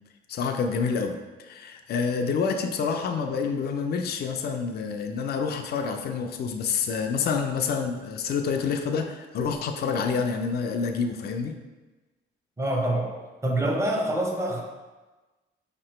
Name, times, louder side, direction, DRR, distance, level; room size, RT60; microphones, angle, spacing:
voice 1, 0.3-11.5, left 5 dB, 55° left, 5 dB, 0.4 m, -28 dB
voice 2, 12.6-14.6, right 1 dB, 15° right, 0 dB, 0.7 m, -26 dB
5.1 x 2.9 x 3.1 m, 1.2 s
cardioid pair, 90°, 20 cm